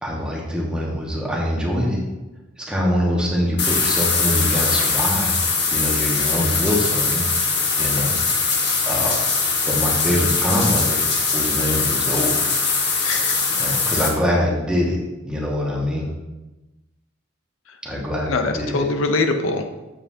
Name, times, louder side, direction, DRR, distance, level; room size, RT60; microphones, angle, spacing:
voice 1, 0.0-2.0 2.6-5.4 5.7-7.2 7.8-8.1 8.4-8.6 8.8-9.2 9.6-11.0 11.3-12.5 13.5-15.0 15.2-16.1 17.8-18.8, equal, 5° right, -4 dB, 1.4 m, -24 dB
sound 1, 3.6-14.1, left 4 dB, 55° left, 1.4 m, -21 dB
voice 2, 13.0-13.5 18.3-19.7, left 3 dB, 90° left, 6 dB, 0.7 m, -23 dB
7.8 x 7.5 x 2.8 m, 1.1 s
head